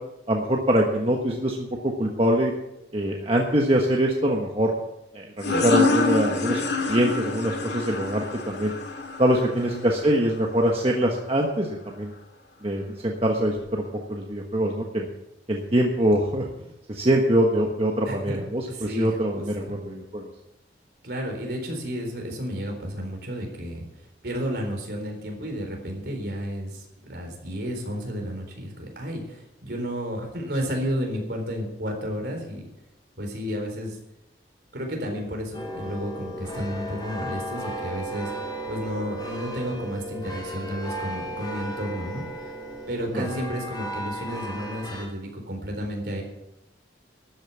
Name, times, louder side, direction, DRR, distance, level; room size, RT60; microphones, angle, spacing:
voice 1, 0.3-2.5 2.9-4.7 5.1-6.6 6.9-8.7 9.2-12.1 12.6-15.1 15.5-16.5 16.9-20.3 43.1-43.3, right 1 dB, 30° right, 0 dB, 1.3 m, -24 dB
sound 1, 5.4-10.8, left 3 dB, 65° left, 2.1 m, -26 dB
voice 2, 9.5-9.9 18.1-19.8 21.0-23.9 24.2-32.7 33.2-34.0 34.7-42.5 42.9-46.2, equal, 60° right, 2 dB, 4.1 m, -32 dB
sound 2, 35.5-45.1, right 1 dB, 25° left, 2.8 m, -35 dB
13.0 x 9.1 x 7.2 m, 0.89 s
head